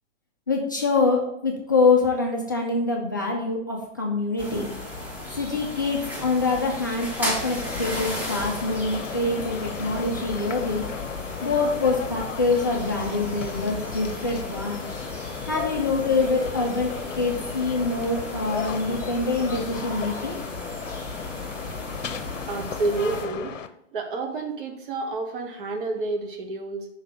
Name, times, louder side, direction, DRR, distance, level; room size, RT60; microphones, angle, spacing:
voice 1, 0.5-4.7 5.3-10.9 11.4-14.9 15.4-20.4, left 3 dB, 20° left, -1 dB, 0.3 m, -25 dB
sound 1, 4.4-23.2, left 1 dB, 5° right, 1.2 m, -35 dB
sound 2, 7.6-23.7, left 7 dB, 85° left, 0.6 m, -36 dB
voice 2, 22.5-23.6 23.9-26.9, right 3 dB, 45° right, 3 dB, 1.2 m, -29 dB
5.5 x 3.9 x 5.0 m, 0.79 s
hypercardioid pair, 130°, 37 cm